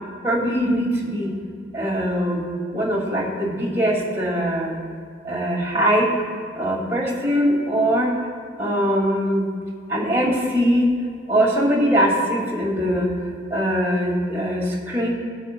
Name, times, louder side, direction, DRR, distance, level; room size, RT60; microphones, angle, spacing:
voice 1, 0.2-1.3 1.7-2.5 2.7-4.8 5.2-6.1 6.6-8.2 8.6-9.4 9.9-11.0 11.3-13.1 13.5-15.1, equal, 15° right, -5 dB, 2.2 m, -21 dB
19.0 x 8.0 x 2.2 m, 2.2 s
head